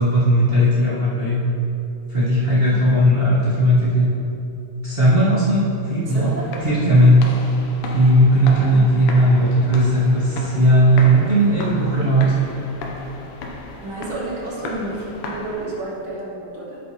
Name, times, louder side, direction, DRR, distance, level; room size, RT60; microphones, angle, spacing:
voice 1, 0.0-1.4 2.1-4.1 4.8-6.3 6.6-7.3 7.9-12.3, equal, 35° right, -9 dB, 0.9 m, -16 dB
sound 1, 6.0-16.0, left 3 dB, 80° left, 2.4 m, -35 dB
voice 2, 6.0-6.4 8.7-8.9 13.8-16.8, right 2 dB, 55° right, -5 dB, 1.8 m, -31 dB
12.0 x 7.7 x 3.1 m, 2.8 s
omnidirectional pair, 3.5 m